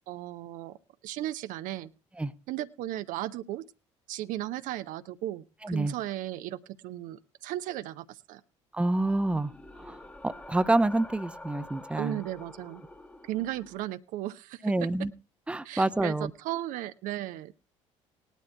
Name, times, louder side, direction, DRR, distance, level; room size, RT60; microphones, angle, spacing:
voice 1, 0.1-0.8 1.0-1.9 2.5-3.6 4.1-8.4 12.0-12.8 13.2-14.9 15.6-17.5, right 14 dB, 55° right, 12 dB, 0.6 m, -36 dB
voice 2, 5.6-5.9 8.7-9.5 9.8-10.0 10.2-12.2 14.6-15.1 15.5-16.3, right 2 dB, 5° right, 13 dB, 0.7 m, -27 dB
sound 1, 8.8-13.9, left 1 dB, 10° left, 1.2 m, -47 dB
19.5 x 12.0 x 2.2 m, 0.33 s
figure-of-eight pair, 55°, 16 cm